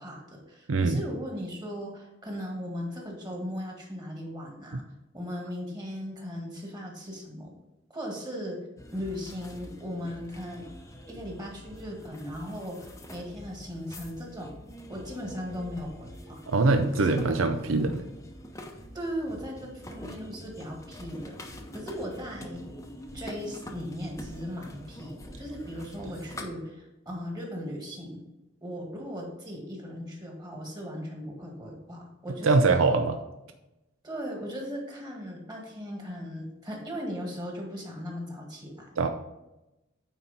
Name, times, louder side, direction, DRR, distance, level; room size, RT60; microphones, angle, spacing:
voice 1, 0.0-4.8 5.1-7.5 7.9-8.6 8.9-10.7 11.1-14.5 14.9-16.4 16.9-17.4 17.7-18.0 18.9-21.4 21.7-22.6 23.1-28.2 28.6-32.8 34.0-38.9, equal, 20° right, 0 dB, 1.8 m, -37 dB
voice 2, 0.7-1.0 16.5-17.9 32.4-33.2 39.0-39.1, right 3 dB, 75° right, 7 dB, 0.5 m, -23 dB
sound 1, 8.8-26.5, left 1 dB, 15° left, 0.8 m, -45 dB
9.2 x 4.4 x 4.1 m, 0.96 s
head